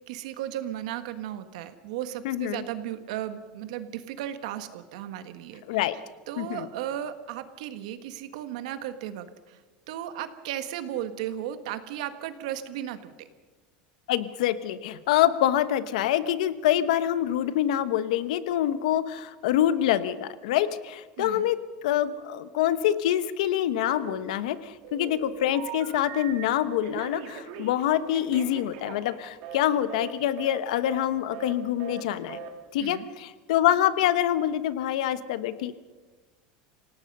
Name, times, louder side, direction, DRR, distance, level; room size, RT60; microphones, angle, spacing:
voice 1, 0.1-5.6 6.3-9.6 9.9-13.3 21.2-21.4 32.8-33.1, right 11 dB, 75° right, 10 dB, 1.6 m, -35 dB
voice 2, 2.2-2.6 5.7-6.0 6.4-6.7 14.1-32.4 32.7-35.7, left 11 dB, 85° left, 13 dB, 1.1 m, -26 dB
Telephone, 23.9-24.5 24.8-26.4 26.8-29.6 29.9-30.1 30.4-30.6 30.8-31.1 31.3-31.5 31.8-32.0 32.3-32.5, right 7 dB, 60° right, 3.2 m, -40 dB
27.5 x 17.5 x 5.5 m, 1.3 s
supercardioid pair, 170°, 4 cm